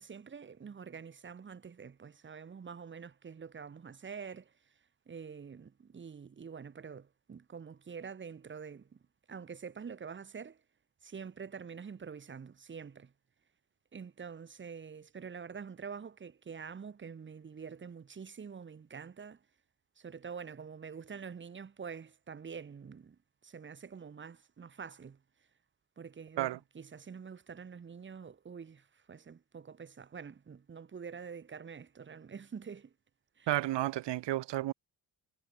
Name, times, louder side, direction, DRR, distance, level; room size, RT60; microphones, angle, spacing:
voice 1, 0.0-4.5 5.1-9.0 9.3-10.6 11.0-13.1 13.9-19.4 20.0-23.2 23.4-25.2 26.0-32.9 33.4-33.5, right 6 dB, 25° right, 6.2 m, -46 dB
voice 2, 33.5-34.7, right 15 dB, 90° right, 4.8 m, -32 dB
cardioid pair, 180°, 41 cm